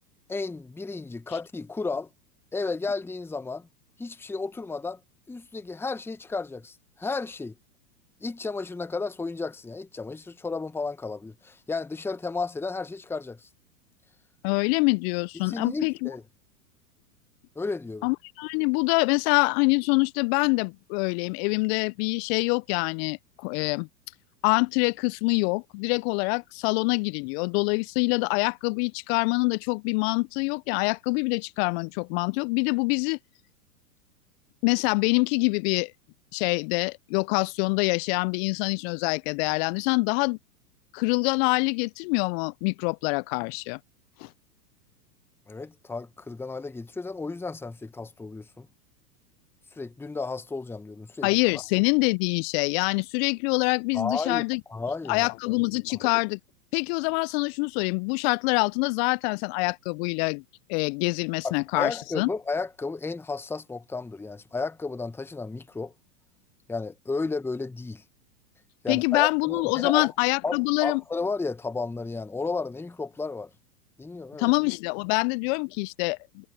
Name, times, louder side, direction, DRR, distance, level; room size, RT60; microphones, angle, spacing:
voice 1, 0.3-2.1 2.5-3.7 4.0-5.0 5.3-7.5 8.2-13.5 15.4-16.2 17.6-18.1 45.5-48.7 49.7-51.6 53.9-54.4 54.7-55.3 55.9-56.0 61.4-65.9 66.7-68.0 68.8-70.1 70.4-73.5 74.0-74.5, left 3 dB, 5° left, 1.0 m, -33 dB
voice 2, 14.4-16.1 18.0-23.9 24.4-33.2 34.6-35.9 36.3-40.4 40.9-43.8 44.2-44.3 51.2-54.6 55.1-56.4 56.7-60.4 60.7-62.3 68.9-71.0 74.4-76.5, left 30 dB, 40° left, 0.9 m, -25 dB
figure-of-eight pair, 100°, 48 cm